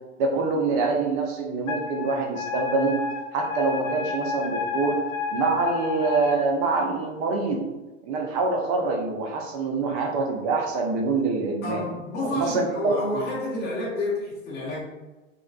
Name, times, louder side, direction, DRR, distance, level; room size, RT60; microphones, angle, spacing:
voice 1, 0.2-3.0 3.3-5.0 5.3-7.6 8.0-11.8 12.2-13.0, right 4 dB, 30° right, 2 dB, 0.4 m, -25 dB
Wind instrument woodwind instrument, 1.7-6.4, left 5 dB, 80° left, 0.6 m, -31 dB
voice 2, 11.6-14.8, left 2 dB, 25° left, -5 dB, 0.9 m, -29 dB
2.4 x 2.2 x 2.3 m, 1.1 s
hypercardioid pair, 115°, 39 cm